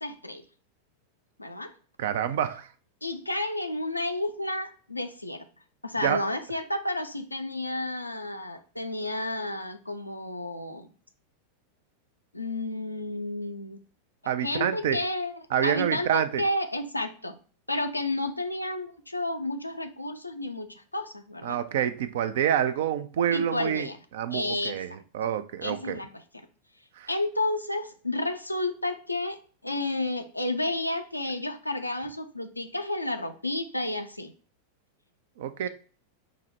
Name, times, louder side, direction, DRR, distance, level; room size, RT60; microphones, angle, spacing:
voice 1, 0.0-0.4 1.4-1.7 3.0-5.5 5.8-10.9 12.3-13.8 14.4-17.4 17.7-21.6 23.3-24.0 24.3-24.8 25.6-26.5 27.1-29.4 29.6-34.3, left 2 dB, 85° left, 0.4 m, -31 dB
voice 2, 2.0-2.7 6.0-6.2 14.3-15.0 15.5-16.4 21.4-23.9 24.1-26.0 27.0-27.1 35.4-35.7, right 9 dB, 55° right, 0.4 m, -27 dB
4.7 x 2.0 x 4.3 m
figure-of-eight pair, 90°, 0 cm